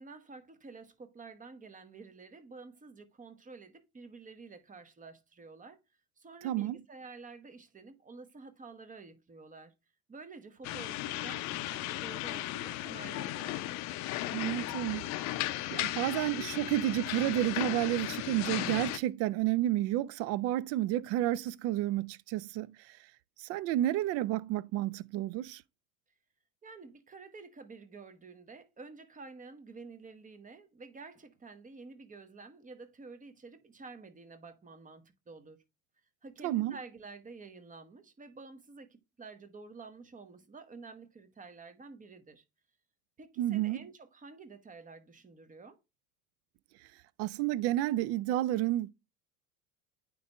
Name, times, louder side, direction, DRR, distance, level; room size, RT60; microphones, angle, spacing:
voice 1, 0.0-5.8 6.2-9.7 10.1-13.6 26.6-35.6 36.2-42.4 43.2-45.8, right 4 dB, 20° right, 1.2 m, -50 dB
voice 2, 6.4-6.8 14.3-15.1 15.7-23.0 23.4-25.6 36.4-36.8 43.4-43.8 47.2-48.9, right 14 dB, 35° right, 0.4 m, -31 dB
sound 1, 10.6-19.0, left 15 dB, 40° left, 0.6 m, -36 dB
9.2 x 3.2 x 3.4 m
hypercardioid pair, 80°, 43 cm